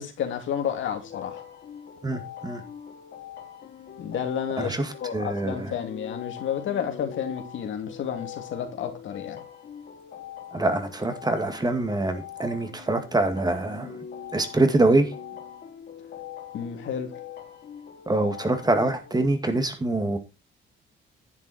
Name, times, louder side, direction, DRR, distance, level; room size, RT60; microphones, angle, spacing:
voice 1, 0.0-1.4 4.0-9.4 16.5-17.1, left 8 dB, 75° left, 2.9 m, -31 dB
sound 1, 1.0-19.1, left 8 dB, 55° left, 3.4 m, -42 dB
voice 2, 2.0-2.6 4.6-5.7 10.5-13.9 14.3-15.1 18.1-20.2, right 2 dB, 20° right, 2.1 m, -24 dB
10.5 x 7.7 x 4.3 m
cardioid pair, 90°, 20 cm